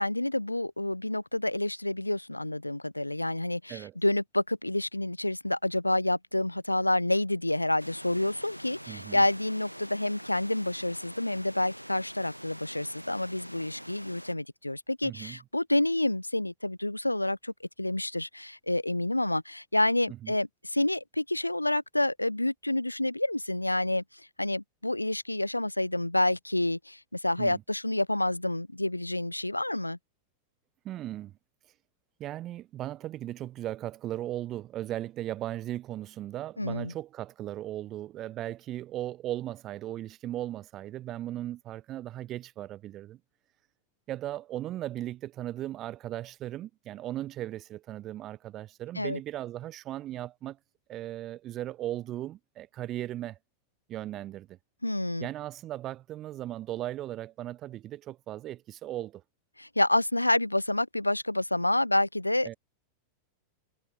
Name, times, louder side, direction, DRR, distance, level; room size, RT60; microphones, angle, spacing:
voice 1, 0.0-24.0 24.4-30.0 36.6-36.9 48.9-49.2 54.8-55.3 59.6-62.5, left 1 dB, 85° left, 1.1 m, -28 dB
sound 1, 7.8-14.3, equal, 90° right, 3.2 m, -45 dB
voice 2, 8.9-9.2 15.0-15.4 20.1-20.4 27.4-27.6 30.8-31.3 32.2-43.2 44.1-50.6 50.9-53.4 53.9-54.6 55.2-59.2 62.4-62.5, right 13 dB, 35° right, 2.3 m, -37 dB
figure-of-eight pair, 90°, 0 cm